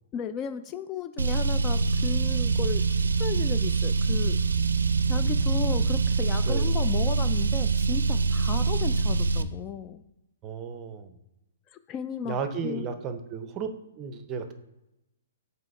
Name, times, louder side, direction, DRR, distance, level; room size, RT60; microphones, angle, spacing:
voice 1, 0.1-2.8 3.2-4.4 5.1-10.0 11.9-12.4 12.6-12.9, left 8 dB, 25° left, 10 dB, 0.3 m, -35 dB
Car, 1.2-9.4, right 4 dB, 85° right, 0.4 m, -24 dB
voice 2, 10.4-11.2 12.2-13.7 14.0-14.5, right 6 dB, 25° right, 8 dB, 0.6 m, -34 dB
7.5 x 3.0 x 4.7 m, 0.92 s
hypercardioid pair, 135°, 0 cm